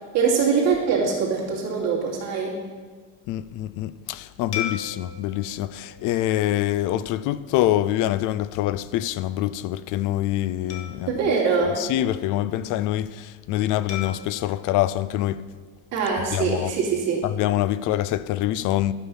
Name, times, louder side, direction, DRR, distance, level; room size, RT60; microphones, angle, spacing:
voice 1, 0.1-2.6 11.0-11.8 15.9-17.2, right 5 dB, 55° right, 2.7 m, -23 dB
voice 2, 3.3-11.1 11.8-15.4 16.3-16.7 17.2-18.9, left 13 dB, 75° left, 0.5 m, -25 dB
sound 1, 4.5-7.2 7.8-8.0 10.7-12.5 13.9-16.2, left 8 dB, 55° left, 1.4 m, -39 dB
11.5 x 6.3 x 5.6 m
cardioid pair, 155°, 31 cm